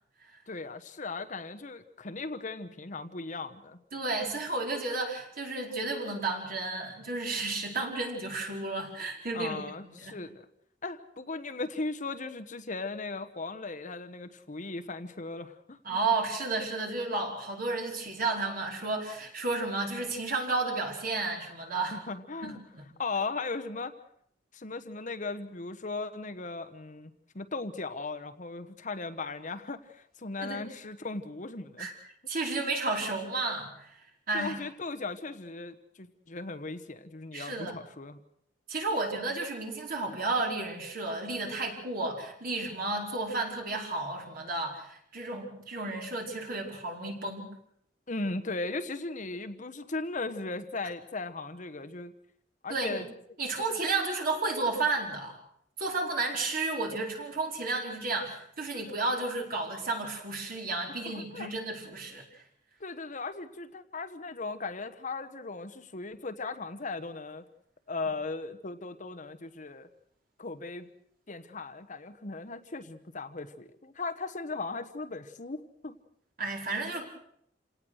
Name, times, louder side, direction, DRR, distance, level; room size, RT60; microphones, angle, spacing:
voice 1, 0.5-3.8 9.3-10.5 10.8-16.0 21.9-22.6 23.0-23.9 24.5-31.9 34.3-38.2 48.1-52.1 52.6-53.1 53.7-53.8 61.0-61.5 62.8-67.4 67.9-69.9 70.4-70.9 71.3-76.0, left 3 dB, 45° left, 10 dB, 1.2 m, -37 dB
voice 2, 3.9-9.6 10.0-10.1 15.8-22.0 22.4-22.8 30.4-30.6 31.8-31.9 32.3-33.9 34.3-34.5 37.3-37.8 38.7-47.5 52.7-53.0 53.4-55.4 55.8-62.4 76.4-77.1, right 3 dB, 50° right, 1 dB, 4.9 m, -32 dB
28.0 x 18.5 x 6.5 m, 0.70 s
head